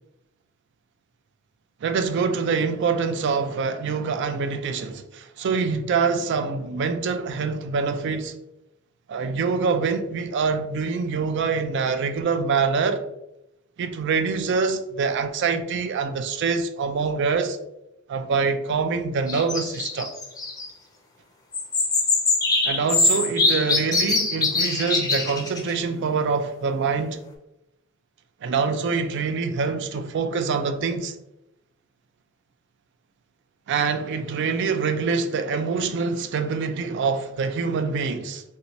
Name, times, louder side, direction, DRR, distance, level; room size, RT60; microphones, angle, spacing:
voice 1, 1.8-8.3 9.1-13.0 13.8-17.6 18.1-20.1 22.6-27.2 28.4-31.2 33.7-38.4, right 5 dB, 55° right, 0.3 m, -25 dB
sound 1, 19.3-20.7 21.5-25.7, left 3 dB, 20° left, 0.5 m, -23 dB
3.3 x 2.7 x 2.9 m
head